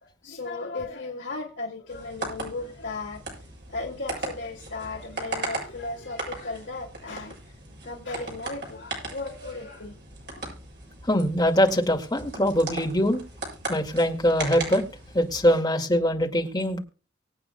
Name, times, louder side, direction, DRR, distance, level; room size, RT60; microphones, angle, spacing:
voice 1, 0.0-3.2 3.7-7.5 7.8-9.9 10.3-10.5, left 3 dB, 65° left, 2.3 m, -36 dB
sound 1, 1.9-15.5, right 2 dB, 60° right, 7.6 m, -38 dB
voice 2, 11.0-13.2 13.7-14.8 15.1-16.8, equal, 20° left, 2.1 m, -23 dB
24.5 x 8.7 x 2.3 m
head